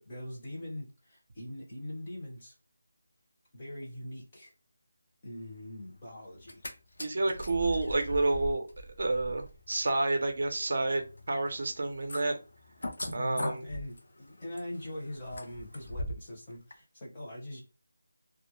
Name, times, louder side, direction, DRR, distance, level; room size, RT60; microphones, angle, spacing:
voice 1, 0.1-2.5 3.5-4.5 5.2-6.6 13.1-17.6, left 1 dB, 20° left, -4 dB, 0.7 m, -42 dB
sound 1, 6.3-6.7 7.0-16.4 16.7-16.8, equal, 60° left, 0.6 m, -41 dB
voice 2, 7.0-8.7 9.0-12.4 13.1-13.6, right 2 dB, 45° right, 4 dB, 0.5 m, -29 dB
2.2 x 2.1 x 3.0 m, 0.32 s
figure-of-eight pair, 175°, 0 cm